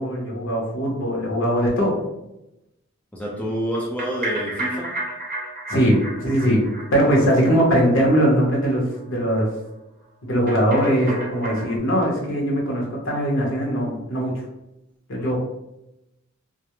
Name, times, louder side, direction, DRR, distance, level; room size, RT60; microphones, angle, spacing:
voice 1, 0.0-1.9 5.7-6.6 6.9-9.5 10.2-14.3 15.1-15.4, equal, 65° left, -2 dB, 0.8 m, -20 dB
voice 2, 3.1-5.0 7.0-7.1 15.2-15.3, equal, 5° left, -3 dB, 0.4 m, -28 dB
sound 1, 3.7-8.3 8.5-8.7 8.9-9.0 9.3-9.4 10.5-11.8, right 2 dB, 45° right, 0.5 m, -32 dB
2.3 x 2.0 x 2.9 m, 0.90 s
head